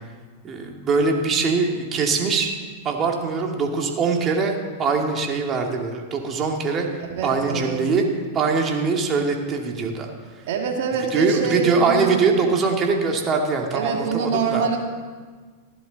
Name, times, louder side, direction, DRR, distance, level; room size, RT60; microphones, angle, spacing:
voice 1, 0.4-2.5 2.8-4.5 4.8-6.9 7.2-8.0 8.3-10.1 11.1-14.6, right 4 dB, 30° right, 2 dB, 2.2 m, -22 dB
voice 2, 7.0-7.8 10.5-12.2 13.7-14.8, right 5 dB, 60° right, 2 dB, 2.3 m, -25 dB
15.5 x 11.5 x 4.1 m, 1.5 s
hypercardioid pair, 100°, 0 cm